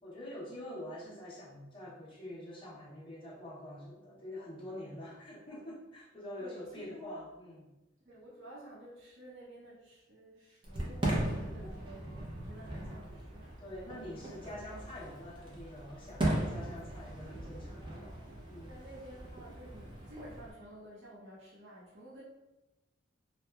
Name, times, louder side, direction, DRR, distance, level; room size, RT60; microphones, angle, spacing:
voice 1, 0.0-7.7 11.4-11.8 13.6-18.2 18.5-18.8, left 1 dB, 25° left, -6 dB, 0.7 m, -46 dB
voice 2, 6.4-7.2 8.0-13.6 16.5-16.8 17.6-22.2, right 1 dB, 75° right, -8 dB, 0.7 m, -52 dB
Fireworks, 10.6-20.5, right 1 dB, 25° right, 0.5 m, -38 dB
2.9 x 2.2 x 2.2 m, 1.0 s
head